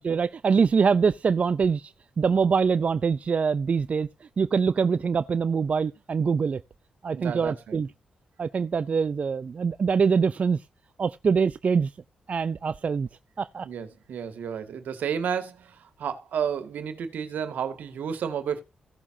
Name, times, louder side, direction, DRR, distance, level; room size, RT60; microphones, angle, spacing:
voice 1, 0.0-6.6 7.0-7.9 8.4-10.6 11.0-11.9 12.3-13.1 13.4-13.7, right 5 dB, 50° right, 0.5 m, -24 dB
voice 2, 7.1-7.8 13.6-18.6, right 7 dB, 75° right, 2.0 m, -31 dB
16.0 x 7.2 x 2.8 m
supercardioid pair, 50°, 3 cm